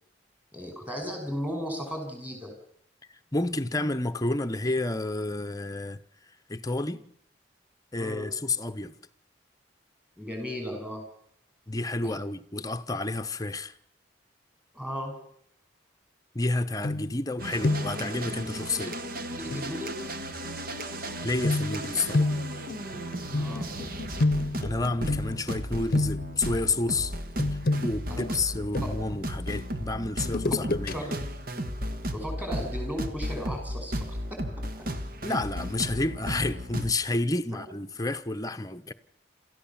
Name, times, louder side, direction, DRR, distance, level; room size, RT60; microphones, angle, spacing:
voice 1, 0.5-2.5 8.0-8.3 10.2-11.0 12.0-12.1 14.7-15.1 19.4-20.2 23.3-23.7 28.1-28.3 30.9-31.1 32.1-34.4, equal, 10° right, 5.7 m, -35 dB
voice 2, 3.3-6.0 6.5-7.0 7.9-8.9 11.7-13.7 16.3-19.0 21.2-22.4 24.6-27.2 27.8-31.1 35.2-38.9, left 2 dB, 20° left, 0.9 m, -30 dB
sound 1, 16.8-17.3 17.6-18.1 19.5-19.7 21.4-25.6 25.9-26.5 27.4-29.2 30.2-30.9 31.3-31.4, left 2 dB, 50° left, 0.8 m, -29 dB
sound 2, 17.4-36.9, equal, 55° right, 1.8 m, -35 dB
28.0 x 14.0 x 7.3 m
head